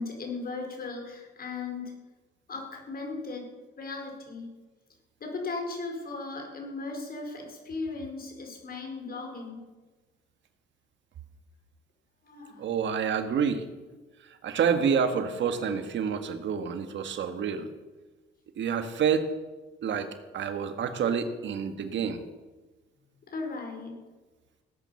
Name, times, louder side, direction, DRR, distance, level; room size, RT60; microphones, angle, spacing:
voice 1, 0.0-2.0 2.5-3.5 3.8-4.5 5.2-9.6 12.2-12.7 23.3-24.0, left 3 dB, 50° left, 2 dB, 5.1 m, -37 dB
voice 2, 12.6-13.6 14.4-17.7 18.6-19.3 19.8-22.2, right 7 dB, 70° right, 8 dB, 1.7 m, -28 dB
17.5 x 9.3 x 7.1 m, 1.2 s
cardioid pair, 90°, 20 cm